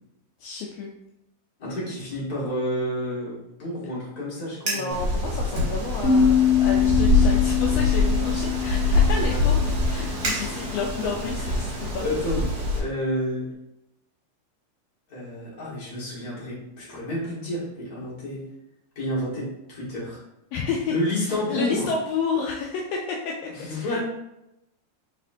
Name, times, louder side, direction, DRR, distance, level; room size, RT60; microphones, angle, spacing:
voice 1, 0.4-0.9 4.6-12.0 20.5-20.9 21.2-23.5 23.8-24.0, left 5 dB, 80° left, -1 dB, 1.4 m, -31 dB
voice 2, 1.6-4.9 9.2-9.5 10.3-10.7 11.5-12.5 12.7-13.5 15.1-18.4 19.0-20.2 20.9-21.9 23.5-24.0, left 1 dB, 35° left, -7 dB, 1.8 m, -30 dB
Fire, 4.5-5.0 5.5-6.3 6.7-7.0 7.7-11.1, equal, 50° right, 1.8 m, -33 dB
Wind, 4.9-12.8, left 2 dB, 85° right, 0.9 m, -24 dB
sound 1, 6.0-11.2, left 8 dB, 65° left, 2.4 m, -24 dB
4.4 x 4.1 x 2.6 m, 0.87 s
omnidirectional pair, 3.3 m